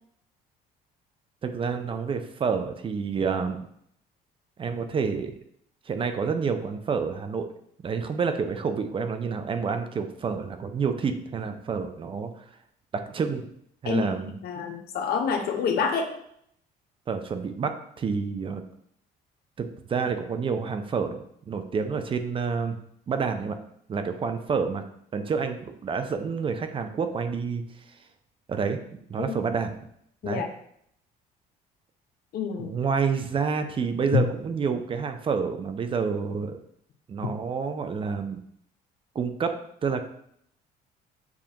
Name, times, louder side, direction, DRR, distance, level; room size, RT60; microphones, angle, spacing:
voice 1, 1.4-3.7 4.6-5.3 5.9-7.5 7.8-12.3 12.9-13.5 13.8-14.4 17.1-18.6 19.6-22.8 23.1-23.6 23.9-24.8 25.1-27.6 28.5-28.8 29.1-29.7 30.2-30.4 32.6-36.6 37.1-38.4 39.1-40.0, right 5 dB, 30° right, 8 dB, 0.5 m, -28 dB
voice 2, 14.4-16.1 29.2-29.3 30.2-30.5 32.3-32.8 34.1-34.2, left 6 dB, 65° left, 5 dB, 0.7 m, -27 dB
7.0 x 2.4 x 2.8 m, 0.70 s
cardioid pair, 110°, 17 cm